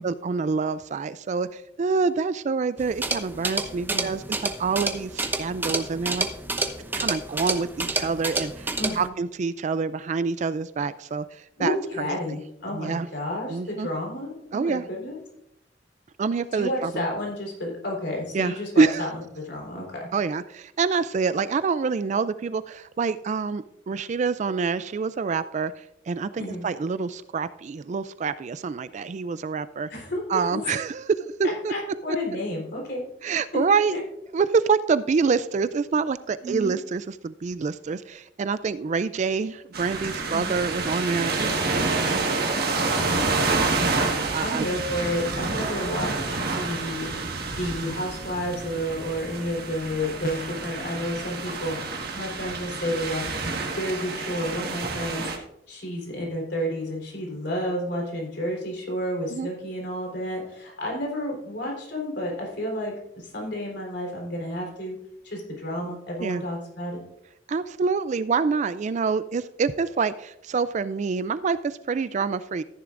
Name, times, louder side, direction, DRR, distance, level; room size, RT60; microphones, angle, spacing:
voice 1, 0.0-4.2 4.6-6.3 6.9-12.2 12.7-13.1 13.5-13.9 14.5-14.8 16.2-17.1 18.3-19.1 20.1-29.9 30.3-31.7 33.2-34.0 34.3-42.9 44.1-44.7 59.3-59.5 66.2-66.4 67.5-72.6, right 5 dB, 40° right, 14 dB, 0.3 m, -26 dB
sound 1, 2.8-9.1, right 2 dB, 10° right, 0.8 m, -29 dB
voice 2, 8.8-9.1 11.6-15.2 16.5-19.1 19.4-20.1 26.4-26.6 29.9-30.5 31.4-33.0 33.9-34.0 36.4-36.8 40.3-40.5 44.4-47.1 47.5-51.8 52.1-53.2 53.7-55.3 55.7-65.0 65.2-67.0, equal, 65° left, -1 dB, 3.9 m, -31 dB
sound 2, 39.7-55.4, right 3 dB, 55° right, 1.6 m, -28 dB
sound 3, 50.2-50.8, left 2 dB, 50° left, 0.7 m, -35 dB
14.0 x 10.5 x 2.5 m, 0.79 s
head